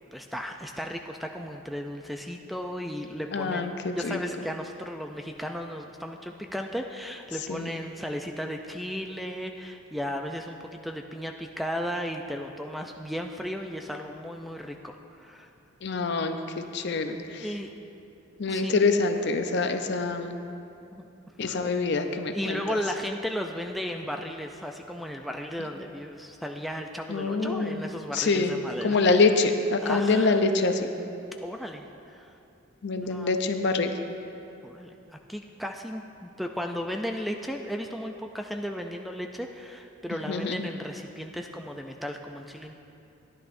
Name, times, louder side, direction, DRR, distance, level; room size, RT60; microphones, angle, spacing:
voice 1, 0.1-15.5 17.4-17.7 18.5-18.7 20.9-21.1 21.5-21.6 22.3-29.2 29.8-30.4 31.4-32.3 33.1-33.3 34.6-42.7, equal, ahead, 3 dB, 0.3 m, -35 dB
voice 2, 3.3-4.2 7.5-7.7 15.8-17.5 18.4-20.4 21.4-22.6 27.1-27.8 28.1-28.6 28.8-30.9 32.8-34.0 40.3-40.7, left 3 dB, 55° left, 6 dB, 0.6 m, -25 dB
14.0 x 11.0 x 2.6 m, 2.7 s
head